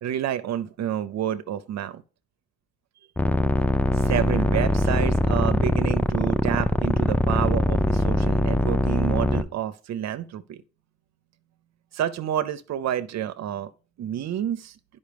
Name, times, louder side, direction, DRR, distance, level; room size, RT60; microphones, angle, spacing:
voice 1, 0.0-2.0 3.9-10.6 11.9-13.7 14.0-14.8, right 10 dB, 60° right, 0.6 m, -29 dB
sound 1, 3.2-9.4, left 1 dB, 5° left, 0.4 m, -22 dB
10.5 x 5.3 x 3.3 m
cardioid pair, 90°, 30 cm